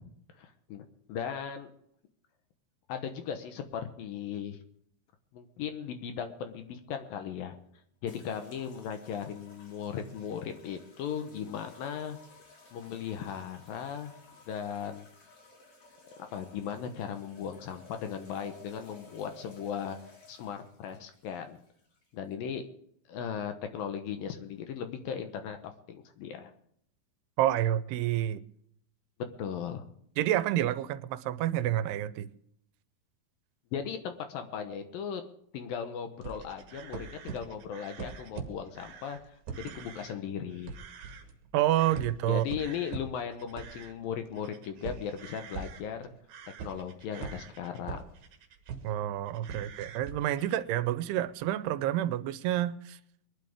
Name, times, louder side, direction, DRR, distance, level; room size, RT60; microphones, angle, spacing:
voice 1, 0.3-1.7 2.9-4.6 5.3-7.6 8.0-12.2 12.7-14.1 14.5-15.1 16.3-20.0 20.3-21.6 22.1-22.7 23.1-26.5 29.4-29.8 33.7-35.2 35.5-39.2 39.6-40.7 42.3-46.1 46.6-48.0 49.5-49.6, left 8 dB, 70° left, 2.6 m, -37 dB
sound 1, 8.1-22.3, left 3 dB, 45° left, 4.8 m, -56 dB
voice 2, 27.4-28.4 30.2-32.3 41.5-42.5 48.8-53.0, right 13 dB, 85° right, 2.7 m, -29 dB
sound 2, 36.2-40.2 40.5-41.5 41.8-49.0 49.3-50.6, right 6 dB, 60° right, 2.5 m, -43 dB
22.0 x 11.5 x 3.6 m
omnidirectional pair, 4.6 m